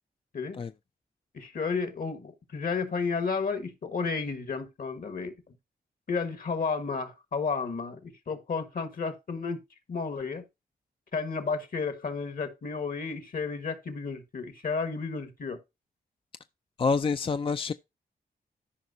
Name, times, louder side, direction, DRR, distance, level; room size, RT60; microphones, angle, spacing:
voice 1, 1.3-5.3 6.1-9.6 9.9-10.4 11.1-15.6, left 5 dB, 60° left, 1.5 m, -32 dB
voice 2, 16.8-17.7, left 4 dB, 35° left, 0.3 m, -27 dB
13.5 x 5.2 x 2.7 m
cardioid pair, 70°, 16 cm